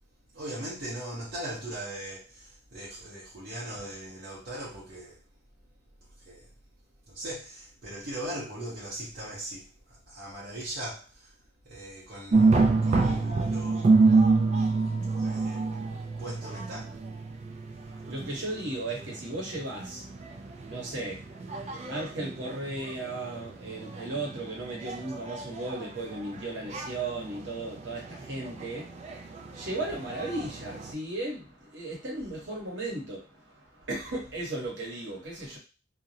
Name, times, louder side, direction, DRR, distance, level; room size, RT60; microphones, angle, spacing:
voice 1, 0.3-5.2 6.3-6.5 7.1-9.7 10.1-11.3 11.7-14.0 15.2-15.7 16.2-16.9, right 1 dB, 55° right, -7 dB, 0.8 m, -39 dB
sound 1, 12.3-30.9, right 3 dB, 35° right, 0.3 m, -28 dB
voice 2, 17.8-35.6, right 2 dB, 75° right, -3 dB, 1.1 m, -36 dB
2.4 x 2.0 x 2.7 m, 0.31 s
head